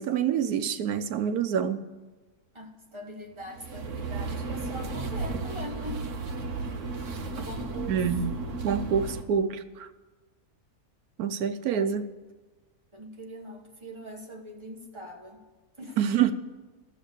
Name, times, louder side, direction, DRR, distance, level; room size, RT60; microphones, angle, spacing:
voice 1, 0.0-1.8 7.9-8.2 8.6-9.9 11.2-12.1 16.0-16.3, right 8 dB, 90° right, 1.2 m, -26 dB
voice 2, 2.5-6.0 7.4-8.3 11.7-12.0 12.9-15.4 15.8-16.0, right 1 dB, 20° right, 1.3 m, -42 dB
sound 1, 3.4-9.2, right 3 dB, 60° right, 1.3 m, -34 dB
13.0 x 6.8 x 8.3 m
omnidirectional pair, 1.6 m